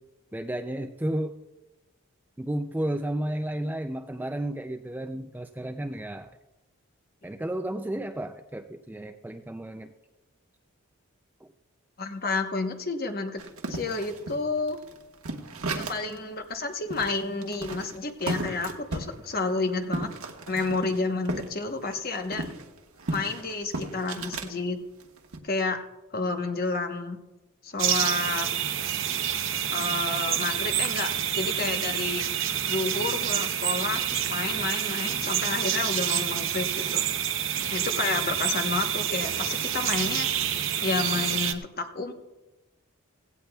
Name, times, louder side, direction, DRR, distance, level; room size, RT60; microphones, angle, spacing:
voice 1, 0.3-1.4 2.4-6.3 7.2-9.9 11.4-11.5, right 1 dB, 10° right, 7 dB, 0.3 m, -32 dB
voice 2, 12.0-13.4 13.7-14.8 15.7-20.1 20.5-22.4 23.1-24.8 25.4-25.8 26.1-27.2 27.6-28.5 29.7-32.2 32.7-37.0 37.7-40.3 40.8-42.1, left 3 dB, 45° left, 5 dB, 1.0 m, -30 dB
sound 1, 13.4-16.2 16.5-16.6 16.9-21.5 21.8-24.5 25.0-25.4, right 2 dB, 90° right, 1.3 m, -35 dB
sound 2, 27.8-41.5, right 10 dB, 65° right, 0.8 m, -28 dB
16.5 x 16.5 x 2.3 m, 1.0 s
head